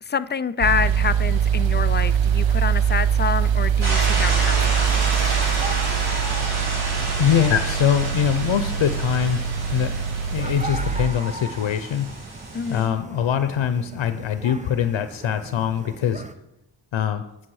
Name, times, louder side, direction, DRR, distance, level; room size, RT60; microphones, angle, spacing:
voice 1, 0.0-5.0 12.5-13.0, left 6 dB, 25° left, 14 dB, 0.3 m, -27 dB
sound 1, 0.6-11.1, right 8 dB, 70° right, 0.7 m, -23 dB
sound 2, 3.8-12.8, right 2 dB, 85° right, 4.1 m, -30 dB
sound 3, 4.7-16.3, right 2 dB, 15° right, 0.7 m, -38 dB
voice 2, 7.2-10.0 10.3-12.1 12.7-16.2 16.9-17.2, left 9 dB, 70° left, 10 dB, 0.6 m, -23 dB
8.8 x 7.6 x 4.7 m, 0.90 s
cardioid pair, 60°, 48 cm